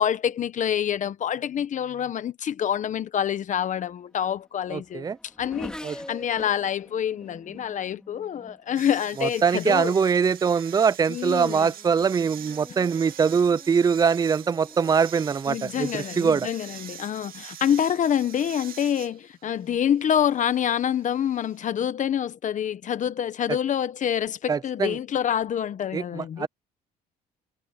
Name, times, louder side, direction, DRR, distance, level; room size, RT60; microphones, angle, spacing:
voice 1, 0.0-5.1 5.4-9.9 11.1-11.7 15.5-26.5, left 9 dB, 45° left, 1.1 m, -27 dB
Race car auto racing / Accelerating revving vroom, 3.9-9.6 10.4-10.8 11.2-17.1, left 1 dB, 5° left, 3.1 m, -47 dB
voice 2, 4.7-5.2 5.8-6.0 9.2-16.5 24.5-25.0 25.9-26.5, right 6 dB, 20° right, 0.5 m, -23 dB
sound 1, 8.8-21.6, right 10 dB, 60° right, 2.2 m, -44 dB
cardioid pair, 110°, 17 cm